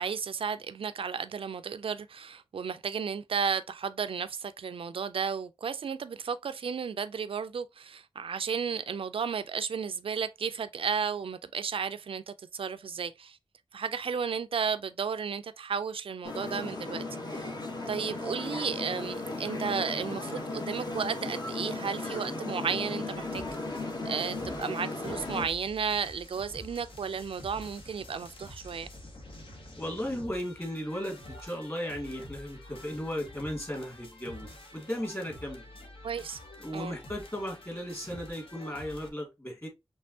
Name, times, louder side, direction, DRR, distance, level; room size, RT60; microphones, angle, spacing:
voice 1, 0.0-13.4 13.7-17.0 17.3-17.6 17.9-23.4 23.7-28.9 36.0-36.4 36.7-37.0, right 6 dB, 75° right, 0.4 m, -33 dB
sound 1, 16.2-25.5, left 2 dB, 50° left, 1.1 m, -36 dB
sound 2, 23.1-39.1, left 1 dB, 70° left, 1.4 m, -48 dB
voice 2, 29.7-35.6 36.6-39.7, equal, 25° left, 2.4 m, -36 dB
5.3 x 3.3 x 2.7 m
wide cardioid pair, 95°, 9 cm